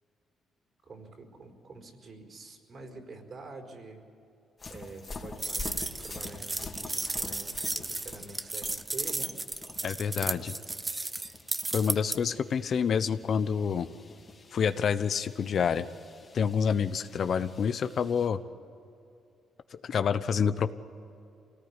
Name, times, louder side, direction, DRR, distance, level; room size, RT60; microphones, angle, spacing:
voice 1, 0.8-4.0 4.7-9.3, right 3 dB, 50° right, 4 dB, 4.6 m, -46 dB
sound 1, 4.6-18.3, left 3 dB, 35° left, 2.8 m, -47 dB
sound 2, 5.4-12.2, right 2 dB, 20° right, 0.9 m, -34 dB
voice 2, 9.8-10.5 11.7-13.9 14.5-15.9 16.3-18.4 19.8-20.7, left 7 dB, 55° left, 11 dB, 0.9 m, -27 dB
25.5 x 18.5 x 9.9 m, 2.7 s
cardioid pair, 90°, 0 cm